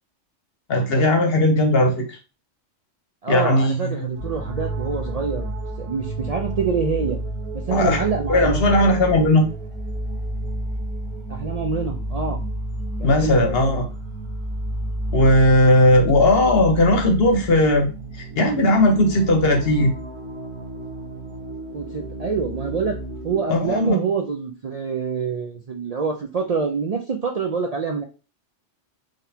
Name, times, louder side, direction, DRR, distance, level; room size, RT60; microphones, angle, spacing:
voice 1, 0.7-2.2 3.3-4.1 7.7-9.5 13.0-13.8 15.1-17.9 18.2-19.9 23.5-24.0, left 1 dB, 55° left, 4 dB, 1.0 m, -17 dB
voice 2, 3.2-7.2 7.7-8.6 8.9-9.0 11.3-12.4 13.0-13.9 21.7-23.0 23.2-28.0, right 5 dB, 75° right, 2 dB, 0.3 m, -26 dB
sound 1, 4.1-23.9, right 1 dB, 25° right, 1.0 m, -31 dB
3.9 x 3.2 x 2.7 m, 0.32 s
omnidirectional pair, 1.3 m